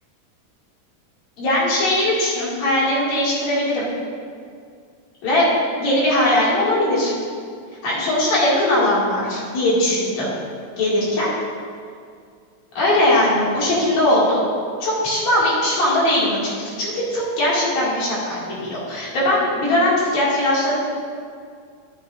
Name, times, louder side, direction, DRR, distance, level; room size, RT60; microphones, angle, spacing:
voice 1, 1.4-3.9 5.2-5.5 5.8-7.1 7.8-10.3 10.8-11.3 12.8-14.4 14.8-20.8, left 1 dB, 65° left, -7 dB, 3.6 m, -20 dB
13.0 x 8.1 x 2.6 m, 2.2 s
omnidirectional pair, 3.6 m